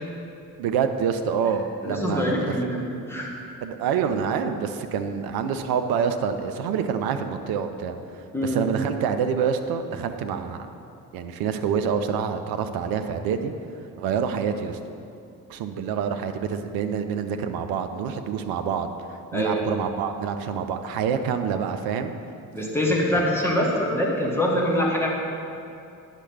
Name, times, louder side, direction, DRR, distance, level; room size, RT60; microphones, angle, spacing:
voice 1, 0.6-2.6 3.6-8.0 8.4-10.7 11.1-13.5 14.0-14.8 15.5-18.9 19.3-22.1 23.1-23.3, right 7 dB, 55° right, 7 dB, 0.7 m, -27 dB
voice 2, 1.8-3.3 8.3-8.6 19.3-19.6 22.5-25.1, equal, 5° left, -3 dB, 1.9 m, -24 dB
9.9 x 6.1 x 4.2 m, 2.6 s
figure-of-eight pair, 40°, 45 cm